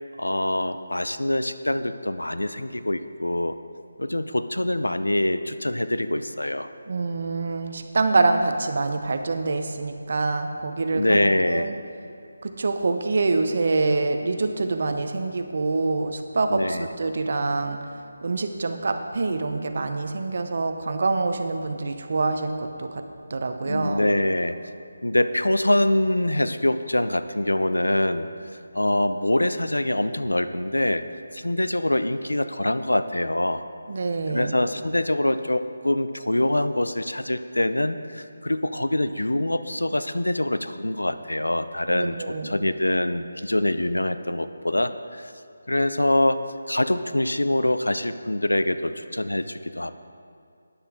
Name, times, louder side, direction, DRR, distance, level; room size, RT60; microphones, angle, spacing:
voice 1, 0.2-3.6 4.0-6.7 10.9-11.7 16.5-16.9 23.6-24.6 25.0-28.3 28.7-31.0 31.3-33.7 34.3-45.3 45.7-49.9, left 1 dB, 90° left, 11 dB, 0.5 m, -24 dB
voice 2, 6.9-11.7 12.4-17.8 18.2-23.0 23.3-24.1 33.9-34.6 41.9-42.6, right 3 dB, 50° right, 7 dB, 0.8 m, -25 dB
12.5 x 9.8 x 3.7 m, 2.5 s
figure-of-eight pair, 160°, 0 cm